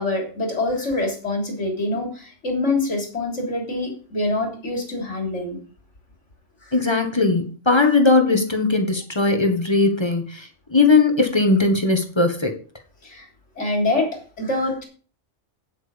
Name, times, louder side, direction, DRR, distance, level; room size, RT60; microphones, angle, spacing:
voice 1, 0.0-5.6 6.6-6.7 13.0-13.3 13.6-14.8, left 2 dB, 70° left, 1 dB, 3.6 m, -25 dB
voice 2, 6.7-12.5, left 3 dB, 20° left, 5 dB, 1.6 m, -19 dB
9.2 x 8.4 x 5.2 m, 0.40 s
omnidirectional pair, 1.3 m